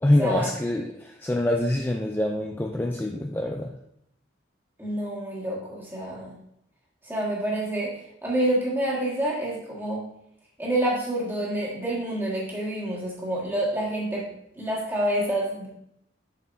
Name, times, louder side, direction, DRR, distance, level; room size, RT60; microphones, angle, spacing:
voice 1, 0.0-3.8, left 1 dB, 10° left, 3 dB, 0.3 m, -25 dB
voice 2, 4.8-6.4 7.0-10.0 10.6-14.3 14.6-15.7, right 1 dB, 10° right, -5 dB, 1.7 m, -28 dB
7.1 x 6.3 x 2.7 m, 0.76 s
head